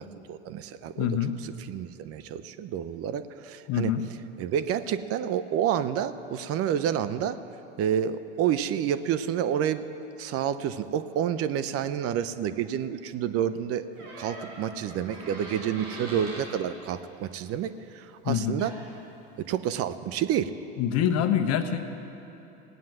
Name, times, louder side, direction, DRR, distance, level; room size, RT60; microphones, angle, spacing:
voice 1, 0.0-1.1 1.4-3.9 4.4-7.4 7.8-9.8 10.2-18.7 19.4-20.5, right 9 dB, 50° right, 13 dB, 0.7 m, -29 dB
voice 2, 1.0-1.3 3.7-4.0 18.2-18.6 20.8-21.8, left 9 dB, 55° left, 8 dB, 1.2 m, -25 dB
Door, 13.9-16.5 18.3-18.4 18.6-19.0, right 1 dB, 65° right, 4.4 m, -42 dB
17.5 x 9.2 x 7.5 m, 3.0 s
hypercardioid pair, 90°, 31 cm